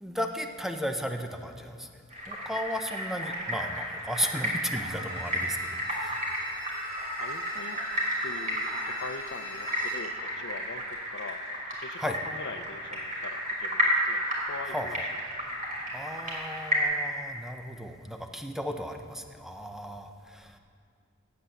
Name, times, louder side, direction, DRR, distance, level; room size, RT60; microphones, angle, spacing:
voice 1, 0.0-6.2 12.0-12.2 14.7-15.0 15.9-20.6, equal, ahead, 5 dB, 0.5 m, -35 dB
sound 1, 2.1-16.8, equal, 40° right, 2.8 m, -32 dB
Bowed string instrument, 4.9-10.2 10.5-10.6, equal, 20° right, 2.0 m, -43 dB
voice 2, 7.2-7.8 8.2-11.4 11.8-15.0, left 4 dB, 60° left, 10 dB, 0.6 m, -42 dB
8.4 x 8.0 x 7.8 m, 2.2 s
head